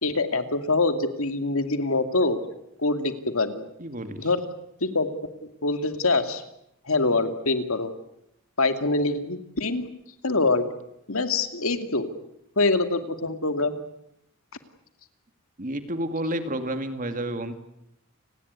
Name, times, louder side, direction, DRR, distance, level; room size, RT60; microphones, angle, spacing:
voice 1, 0.0-2.4 2.8-3.7 4.2-4.5 4.8-5.1 5.6-6.4 6.8-7.9 8.6-9.8 10.2-10.7 11.1-12.1 12.6-13.8, left 3 dB, 70° left, 9 dB, 2.5 m, -24 dB
voice 2, 3.8-4.3 15.6-17.5, right 1 dB, 40° right, 9 dB, 2.3 m, -30 dB
30.0 x 19.5 x 9.6 m, 0.80 s
head